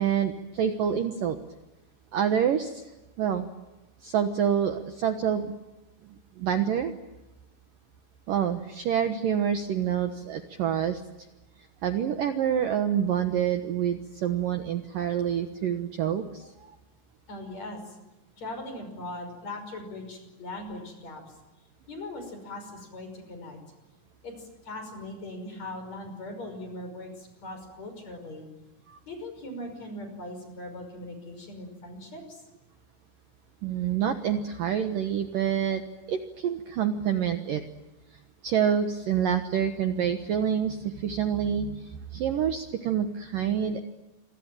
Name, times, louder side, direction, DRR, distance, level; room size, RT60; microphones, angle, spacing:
voice 1, 0.0-1.4 2.1-2.9 3.2-3.5 4.0-5.5 6.4-6.9 8.3-11.0 11.8-16.7 28.9-29.0 33.6-35.8 36.1-37.6 38.4-43.8, right 8 dB, 70° right, 7 dB, 2.2 m, -27 dB
voice 2, 17.3-18.0 18.4-21.4 21.9-23.6 24.2-28.5 29.1-32.4, left 1 dB, 35° left, 6 dB, 6.6 m, -40 dB
28.5 x 23.5 x 9.0 m, 1.0 s
omnidirectional pair, 5.6 m